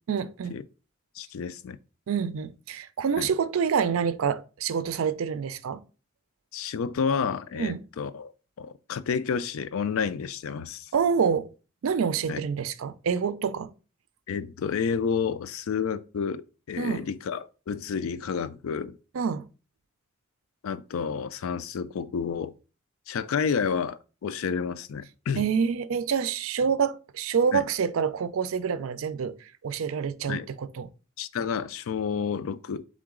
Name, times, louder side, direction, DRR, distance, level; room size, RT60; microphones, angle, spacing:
voice 1, 0.1-0.6 2.1-5.8 7.5-7.8 10.9-11.5 11.8-13.7 16.8-17.0 19.1-19.5 25.4-30.9, right 6 dB, 80° right, 0.4 m, -27 dB
voice 2, 1.2-1.8 3.2-3.3 6.5-8.3 8.6-10.9 12.3-12.4 14.3-19.0 20.6-22.5 23.1-25.4 27.5-27.6 30.3-30.5 31.2-32.8, left 6 dB, 80° left, 0.4 m, -30 dB
3.8 x 3.7 x 3.6 m
head